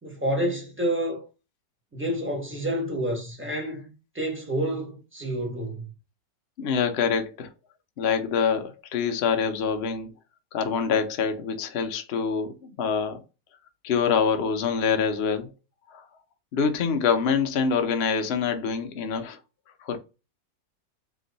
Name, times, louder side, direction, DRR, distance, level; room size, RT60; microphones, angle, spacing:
voice 1, 0.0-1.3 1.9-5.9, right 1 dB, 10° right, 0.9 m, -29 dB
voice 2, 6.6-7.5 8.0-10.1 10.5-13.2 13.8-15.5 15.9-16.0 16.5-19.4 19.8-20.0, left 6 dB, 75° left, 0.5 m, -25 dB
3.4 x 2.9 x 3.9 m
omnidirectional pair, 1.9 m